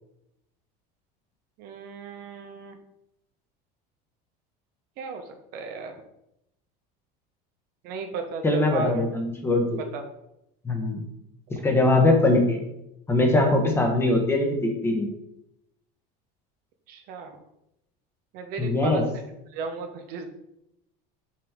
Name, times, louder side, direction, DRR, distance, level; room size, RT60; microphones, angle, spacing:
voice 1, 1.6-2.8 5.0-5.2 5.5-6.0 7.8-9.0 9.9-10.0 16.9-17.3 18.3-19.2 19.5-20.3, right 4 dB, 55° right, 5 dB, 0.9 m, -35 dB
voice 2, 8.4-9.8 10.6-11.0 11.6-12.6 13.1-15.1 18.6-19.0, left 2 dB, 15° left, 2 dB, 1.0 m, -21 dB
5.7 x 5.0 x 3.6 m, 0.81 s
cardioid pair, 155°, 19 cm